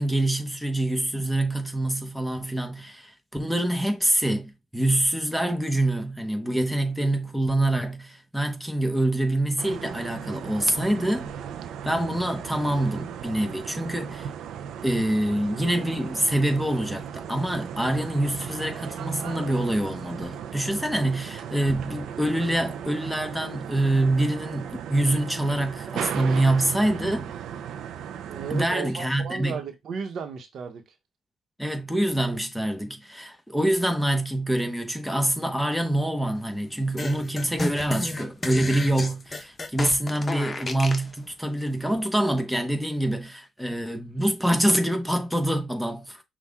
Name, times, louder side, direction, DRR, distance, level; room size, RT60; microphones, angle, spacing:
voice 1, 0.0-11.3 11.8-14.3 14.8-27.3 28.5-29.6 31.6-46.2, right 1 dB, ahead, 1.2 m, -25 dB
sound 1, 9.6-28.7, right 8 dB, 80° right, 0.5 m, -36 dB
voice 2, 28.3-30.8, right 6 dB, 65° right, 1.1 m, -34 dB
sound 2, 37.0-41.1, left 2 dB, 25° left, 1.1 m, -32 dB
5.8 x 2.5 x 3.6 m
cardioid pair, 90°, 0 cm